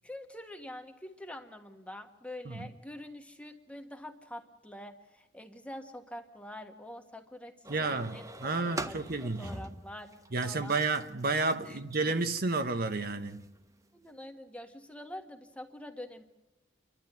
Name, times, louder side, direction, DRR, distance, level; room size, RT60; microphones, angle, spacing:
voice 1, 0.0-8.3 8.6-10.1 10.4-10.9 11.6-11.8 13.9-16.2, left 1 dB, 5° left, 1.6 m, -46 dB
sound 1, 7.6-13.9, right 2 dB, 20° right, 1.0 m, -45 dB
voice 2, 7.7-9.5 10.3-13.4, right 3 dB, 55° right, 1.0 m, -31 dB
29.0 x 12.0 x 9.2 m
head